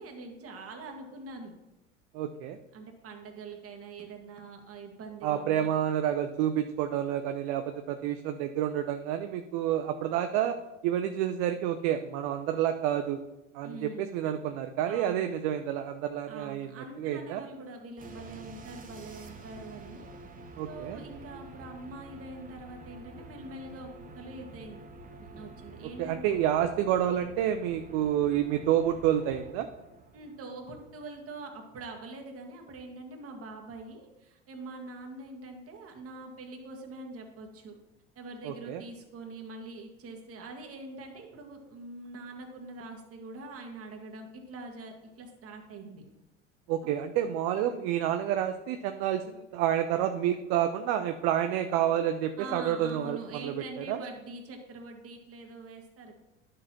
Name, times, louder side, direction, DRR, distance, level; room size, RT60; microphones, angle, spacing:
voice 1, 0.0-1.5 2.7-5.7 13.6-14.2 14.9-15.3 16.3-20.1 20.6-23.9 24.2-24.8 25.2-26.4 30.1-37.8 38.2-46.0 52.4-56.2, right 2 dB, 40° right, 2 dB, 1.8 m, -44 dB
voice 2, 2.1-2.6 5.2-10.6 10.8-13.2 13.5-16.7 17.0-17.4 20.6-21.0 26.0-29.7 38.4-38.8 46.7-54.0, right 10 dB, 60° right, 7 dB, 0.6 m, -29 dB
sound 1, 18.0-31.9, right 2 dB, 25° right, 1.0 m, -48 dB
11.0 x 6.6 x 2.9 m, 0.97 s
hypercardioid pair, 75°, 36 cm